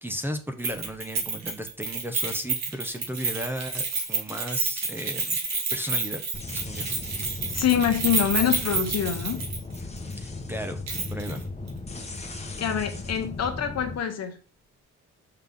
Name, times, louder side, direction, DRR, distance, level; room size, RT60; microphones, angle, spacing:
voice 1, 0.0-5.4 5.7-6.2 6.5-6.9 10.2-10.8 11.1-11.5, equal, 5° right, 6 dB, 1.0 m, -35 dB
Keys jangling, 0.6-9.8 10.1-10.2 10.9-11.4 11.7-11.8, right 4 dB, 60° right, 2.0 m, -29 dB
sound 1, 6.3-14.0, left 2 dB, 20° left, 1.3 m, -36 dB
voice 2, 7.5-9.4 12.6-14.4, left 9 dB, 60° left, 6 dB, 1.3 m, -25 dB
5.8 x 5.6 x 3.7 m, 0.37 s
cardioid pair, 90°, 30 cm